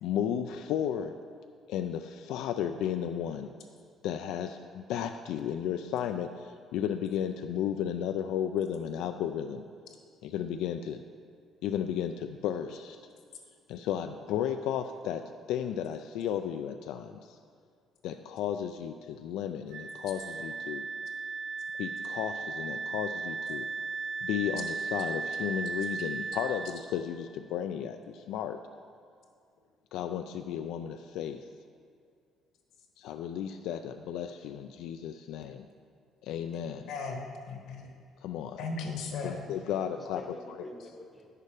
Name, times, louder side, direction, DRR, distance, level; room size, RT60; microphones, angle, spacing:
voice 1, 0.0-1.1 1.7-3.5 4.0-9.6 10.2-11.0 11.6-13.0 13.7-17.4 18.0-20.8 21.8-23.7 24.2-28.6 29.9-31.4 33.0-35.7 36.2-36.9 38.2-38.6 39.2-40.2, left 9 dB, 85° left, 7 dB, 0.3 m, -34 dB
Wind instrument woodwind instrument, 19.7-26.8, right 4 dB, 80° right, 0.8 m, -36 dB
voice 2, 36.5-37.2 37.5-37.9 38.6-39.4, left 4 dB, 70° left, 2 dB, 1.2 m, -37 dB
voice 3, 39.3-41.3, left 1 dB, 10° left, 1 dB, 0.7 m, -47 dB
9.6 x 6.7 x 4.9 m, 2.2 s
cardioid pair, 175°, 0 cm